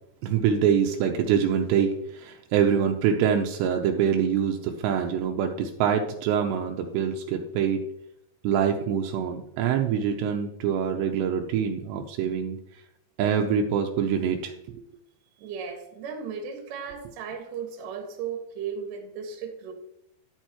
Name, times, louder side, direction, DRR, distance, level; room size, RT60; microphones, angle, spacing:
voice 1, 0.2-7.8 8.4-12.6 13.2-14.5, right 8 dB, 85° right, 3 dB, 2.8 m, -25 dB
voice 2, 15.4-19.7, right 6 dB, 60° right, 3 dB, 2.7 m, -36 dB
11.0 x 9.0 x 3.0 m, 0.81 s
omnidirectional pair, 5.2 m